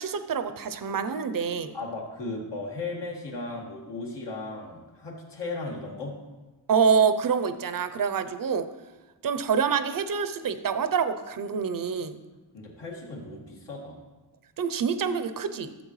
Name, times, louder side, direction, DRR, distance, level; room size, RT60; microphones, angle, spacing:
voice 1, 0.0-1.7 6.7-8.7 9.2-12.1 14.6-15.7, right 6 dB, 50° right, 11 dB, 0.6 m, -26 dB
voice 2, 1.7-6.2 12.5-14.0, left 3 dB, 75° left, -3 dB, 2.0 m, -36 dB
13.0 x 7.6 x 3.2 m, 1.2 s
wide cardioid pair, 130°, 42 cm